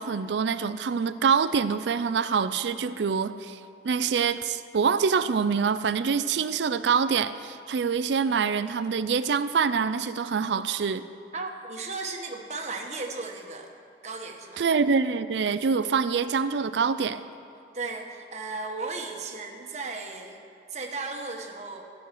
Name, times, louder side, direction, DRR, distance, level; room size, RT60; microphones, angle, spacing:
voice 1, 0.0-3.6 3.8-11.1 14.6-17.2, right 6 dB, 85° right, 13 dB, 0.4 m, -25 dB
voice 2, 11.3-14.6 17.7-20.4 20.7-21.8, right 3 dB, 40° right, 2 dB, 1.2 m, -35 dB
14.0 x 6.4 x 9.3 m, 2.5 s
head